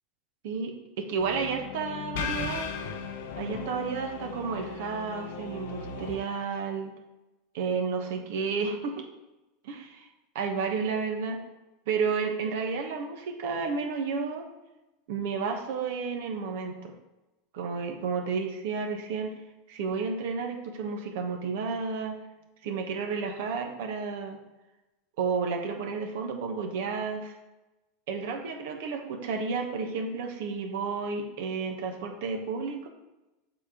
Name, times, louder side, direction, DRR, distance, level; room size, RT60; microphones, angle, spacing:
voice 1, 0.4-2.7 3.4-6.9 7.5-9.1 9.6-10.1 10.3-11.4 11.9-14.5 15.1-16.9 17.5-19.3 19.7-22.2 22.6-24.4 25.2-27.3 28.1-32.9, right 5 dB, 60° right, 4 dB, 1.2 m, -31 dB
sound 1, 1.2-6.2, left 5 dB, 65° left, 0.8 m, -37 dB
7.4 x 4.2 x 4.9 m, 1.0 s
figure-of-eight pair, 85°, 0 cm